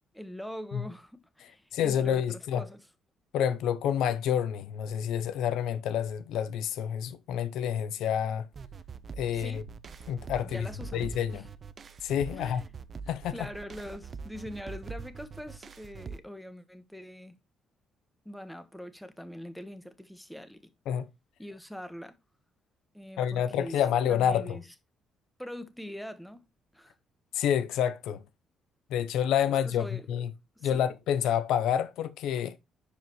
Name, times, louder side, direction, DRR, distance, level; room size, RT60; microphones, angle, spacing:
voice 1, 0.1-2.8 9.3-9.6 10.4-11.5 12.3-12.6 13.3-17.4 18.2-20.6 21.4-22.2 22.9-23.8 24.1-24.7 25.4-26.4 26.7-26.9 29.5-30.0 30.6-30.8, equal, 5° left, 1.3 m, -43 dB
voice 2, 1.7-2.6 3.3-8.5 9.2-9.6 10.1-10.7 10.9-11.4 12.0-12.6 13.1-13.3 20.9-21.1 23.2-24.6 27.3-28.2 28.9-30.3 30.6-32.6, left 9 dB, 85° left, 0.7 m, -28 dB
sound 1, 8.5-16.2, right 5 dB, 40° right, 0.6 m, -43 dB
10.5 x 5.0 x 3.1 m
cardioid pair, 100°, 0 cm